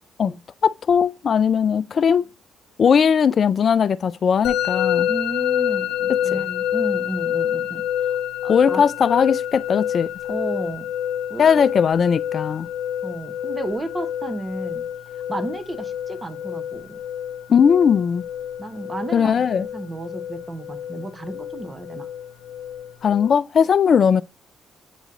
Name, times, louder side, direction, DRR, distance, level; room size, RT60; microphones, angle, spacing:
voice 1, 0.6-2.3 2.8-5.1 6.3-6.4 8.5-10.1 11.4-12.7 17.5-18.2 19.1-19.7 23.0-24.2, left 7 dB, 50° left, 0.3 m, -18 dB
Musical instrument, 4.4-23.3, left 10 dB, 85° left, 0.8 m, -27 dB
voice 2, 5.1-8.8 10.3-10.9 11.3-11.7 13.0-14.8 15.3-17.0 18.6-22.1, right 1 dB, 20° right, 1.1 m, -33 dB
9.1 x 3.1 x 3.7 m
cardioid pair, 90°, 0 cm